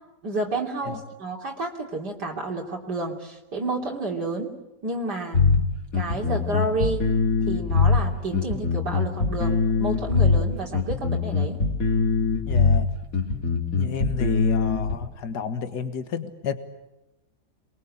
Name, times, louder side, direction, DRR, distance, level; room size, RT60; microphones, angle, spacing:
voice 1, 0.2-4.5 4.8-5.4 5.9-7.1 7.5-11.6, right 2 dB, 75° right, 0 dB, 3.6 m, -30 dB
sound 1, 5.3-14.9, left 4 dB, 55° left, 3.2 m, -22 dB
voice 2, 12.5-12.9 13.8-16.5, left 6 dB, 70° left, 9 dB, 2.1 m, -31 dB
27.5 x 22.5 x 8.7 m, 0.97 s
omnidirectional pair, 1.8 m